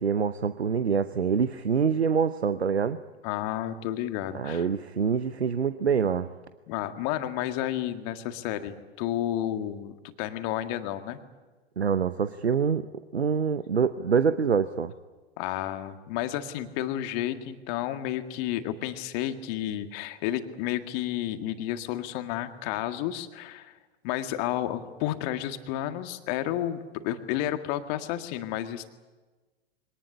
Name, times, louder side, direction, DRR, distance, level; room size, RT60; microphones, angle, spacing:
voice 1, 0.0-3.0 4.3-6.3 11.8-12.9 13.1-14.9, right 6 dB, 80° right, 13 dB, 0.9 m, -25 dB
voice 2, 3.2-4.7 6.7-11.2 15.4-23.7 24.0-28.9, left 12 dB, 40° left, 8 dB, 1.9 m, -31 dB
24.0 x 18.5 x 10.0 m, 1.3 s
figure-of-eight pair, 100°, 32 cm